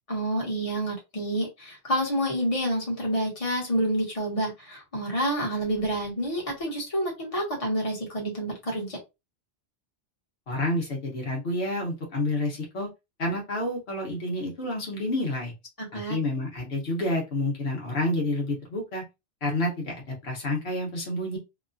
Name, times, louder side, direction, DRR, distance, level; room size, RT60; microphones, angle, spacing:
voice 1, 0.1-9.0 15.8-16.2, right 1 dB, 35° left, -2 dB, 1.3 m, -28 dB
voice 2, 10.5-12.9 13.2-15.5 15.9-19.0 19.4-21.4, left 1 dB, 75° left, -1 dB, 1.3 m, -29 dB
2.9 x 2.3 x 2.5 m, 0.24 s
omnidirectional pair, 1.1 m